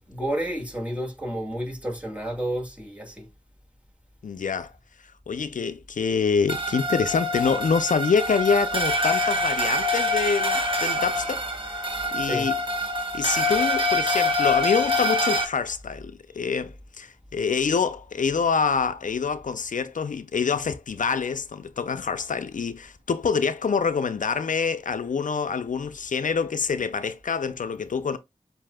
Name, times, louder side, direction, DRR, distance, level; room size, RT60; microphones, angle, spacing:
voice 1, 0.0-3.3 12.2-12.5, right 1 dB, 10° right, 2.0 m, -31 dB
voice 2, 4.2-4.7 5.3-11.8 12.1-12.6 13.1-28.2, left 5 dB, 75° left, 0.5 m, -26 dB
sound 1, 6.5-15.4, left 1 dB, 40° right, 1.3 m, -25 dB
7.4 x 2.7 x 2.2 m
wide cardioid pair, 50°, 13 cm